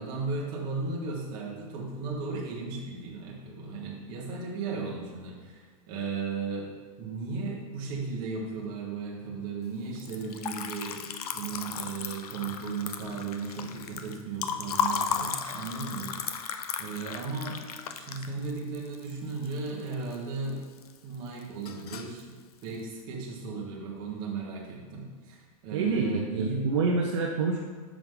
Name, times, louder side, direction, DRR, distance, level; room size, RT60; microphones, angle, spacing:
voice 1, 0.0-6.7 7.0-11.0 11.3-17.6 17.9-20.6 21.0-22.3 22.6-26.6, right 4 dB, 25° right, -3 dB, 1.4 m, -36 dB
Liquid, 9.9-20.2 20.5-21.2 21.4-22.2, left 7 dB, 80° left, 0.7 m, -35 dB
voice 2, 25.7-27.6, right 4 dB, 50° right, 0 dB, 0.8 m, -27 dB
8.4 x 6.2 x 3.9 m, 1.5 s
supercardioid pair, 175°, 19 cm